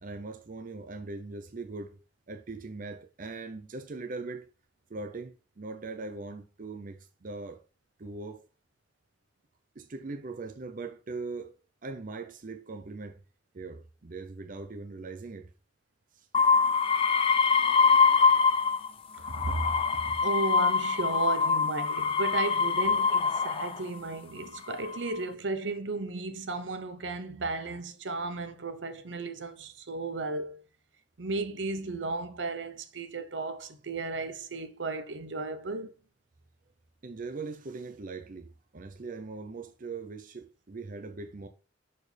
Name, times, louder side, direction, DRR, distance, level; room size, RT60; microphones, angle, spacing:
voice 1, 0.0-2.0 2.3-4.5 4.9-7.6 8.0-8.5 9.8-13.2 13.5-15.5 16.1-16.3 37.0-41.5, right 3 dB, 50° right, 0.6 m, -40 dB
sound 1, 16.3-18.9 19.2-23.8 24.5-25.1, left 5 dB, 30° left, 0.3 m, -24 dB
voice 2, 19.2-30.6 31.2-35.9, right 3 dB, 80° right, 0.9 m, -34 dB
11.0 x 4.4 x 3.4 m
head